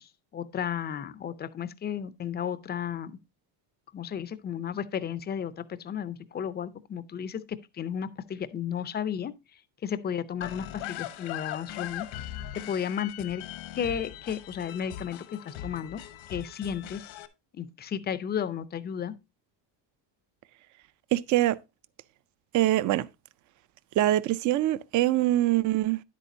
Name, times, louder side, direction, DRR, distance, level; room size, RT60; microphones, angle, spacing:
voice 1, 0.0-3.2 3.9-12.1 12.6-13.4 13.7-16.0 16.3-17.0 17.5-19.2, left 8 dB, 25° left, 0.4 m, -33 dB
sound 1, 10.4-17.3, left 12 dB, 75° left, 1.0 m, -40 dB
voice 2, 21.1-21.6 22.5-23.1 24.0-26.0, right 14 dB, 45° right, 0.4 m, -24 dB
9.9 x 8.3 x 2.6 m
cardioid pair, 140°, 46 cm